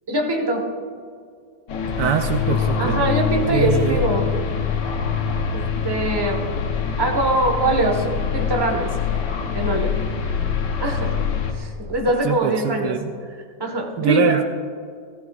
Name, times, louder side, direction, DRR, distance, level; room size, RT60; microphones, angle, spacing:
voice 1, 0.1-0.7 2.8-4.3 5.5-6.6 7.0-8.9 9.5-10.0 10.8-11.2 11.5-13.0 13.6-14.4, right 1 dB, 15° right, 1 dB, 1.2 m, -23 dB
sound 1, 1.7-11.5, left 6 dB, 75° left, 1.6 m, -24 dB
voice 2, 2.0-3.0 3.5-4.0 12.2-13.1 14.0-14.4, right 8 dB, 75° right, 6 dB, 1.3 m, -23 dB
17.0 x 15.5 x 2.4 m, 2.2 s
omnidirectional pair, 1.9 m